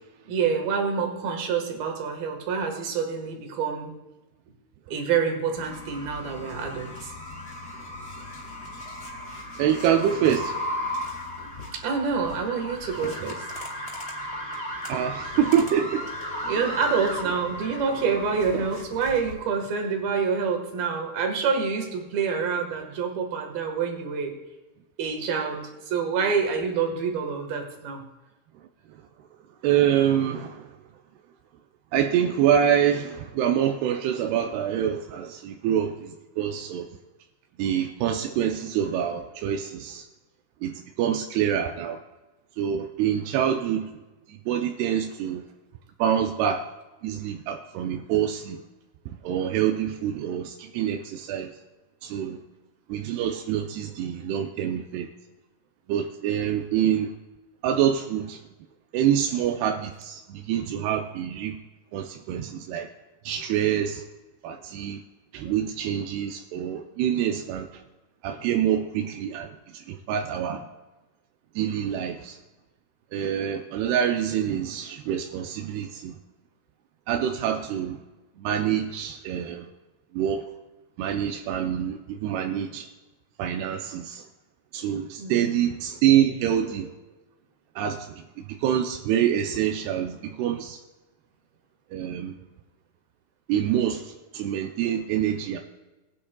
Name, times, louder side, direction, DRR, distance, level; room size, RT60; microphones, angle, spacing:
voice 1, 0.3-4.0 4.9-7.1 11.4-13.5 16.5-24.3 25.0-28.0 85.2-85.5, right 5 dB, 70° right, 4 dB, 3.4 m, -27 dB
sound 1, 5.6-19.3, left 1 dB, 20° left, 2.5 m, -35 dB
voice 2, 9.6-10.8 14.9-16.1 18.5-18.7 29.6-30.8 31.9-36.9 37.6-40.1 40.6-42.0 42.6-44.0 44.3-45.4 46.0-46.6 47.0-48.6 49.1-51.6 52.0-52.4 52.9-55.1 55.9-57.1 57.6-58.4 58.9-61.6 61.9-62.9 63.2-64.0 64.4-65.0 65.3-67.8 68.2-70.7 71.6-72.4 73.1-76.2 77.1-78.0 78.4-79.7 80.1-80.5 81.0-82.9 83.4-84.2 84.7-86.9 87.8-90.8 91.9-92.4 93.5-95.6, right 9 dB, 90° right, 4 dB, 2.7 m, -26 dB
20.5 x 10.0 x 2.3 m, 1.1 s
omnidirectional pair, 4.5 m